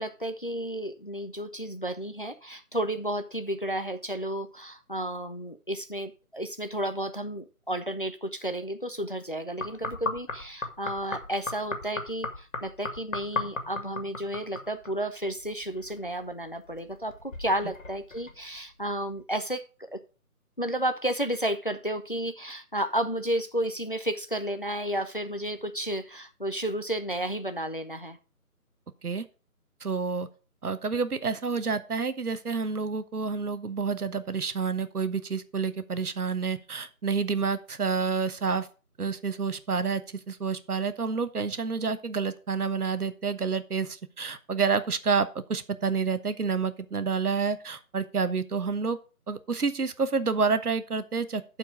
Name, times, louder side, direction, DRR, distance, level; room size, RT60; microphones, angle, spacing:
voice 1, 0.0-17.1 17.4-19.6 19.9-20.0 20.6-28.2, right 1 dB, 35° left, 10 dB, 0.5 m, -32 dB
sound 1, 9.6-15.0 15.3-16.3 16.7-18.6 19.2-19.3, left 3 dB, 60° left, 2.0 m, -36 dB
voice 2, 29.8-30.3 30.6-38.7 39.0-49.0 49.3-51.6, right 5 dB, 80° right, 12 dB, 1.2 m, -29 dB
12.0 x 4.6 x 4.9 m, 0.34 s
figure-of-eight pair, 165°, 45 cm